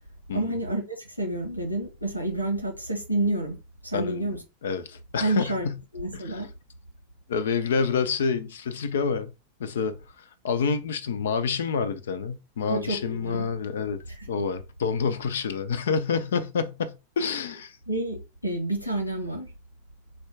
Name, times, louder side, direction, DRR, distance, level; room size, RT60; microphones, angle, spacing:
voice 1, 0.3-3.6 3.8-4.4 5.2-5.7 5.9-6.5 12.7-13.5 17.9-19.5, right 1 dB, 90° right, 1.0 m, -29 dB
voice 2, 3.9-5.8 6.1-6.4 7.3-9.3 9.6-10.0 10.4-17.8, left 5 dB, 60° left, 0.5 m, -28 dB
4.3 x 2.3 x 4.7 m
figure-of-eight pair, 90°, 0 cm